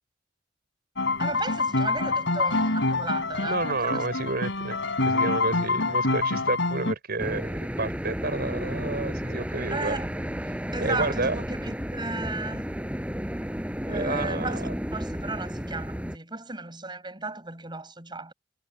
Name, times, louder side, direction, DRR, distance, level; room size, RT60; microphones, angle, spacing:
sound 1, 1.0-6.9, left 3 dB, 70° left, 5.8 m, -26 dB
voice 1, 1.2-4.1 9.7-10.1 10.7-12.7 13.9-18.3, right 3 dB, 25° right, 7.8 m, -35 dB
voice 2, 3.4-4.8 5.0-10.0 10.5-10.6 10.8-11.4 13.9-14.7, right 3 dB, 55° right, 4.4 m, -30 dB
sound 2, 7.2-16.2, equal, 5° right, 6.3 m, -32 dB
head